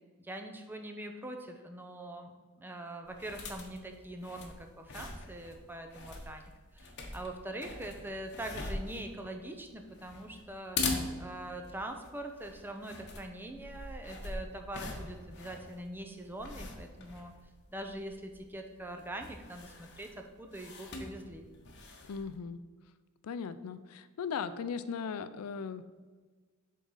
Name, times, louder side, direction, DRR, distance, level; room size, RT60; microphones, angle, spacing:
voice 1, 0.2-10.8 11.2-17.3 17.7-21.5, right 1 dB, 10° right, 4 dB, 0.6 m, -43 dB
sound 1, 3.1-22.4, left 3 dB, 55° left, 1.0 m, -43 dB
voice 2, 22.1-22.6 23.2-25.9, left 6 dB, 85° left, 13 dB, 0.4 m, -38 dB
7.1 x 3.7 x 5.5 m, 1.4 s
head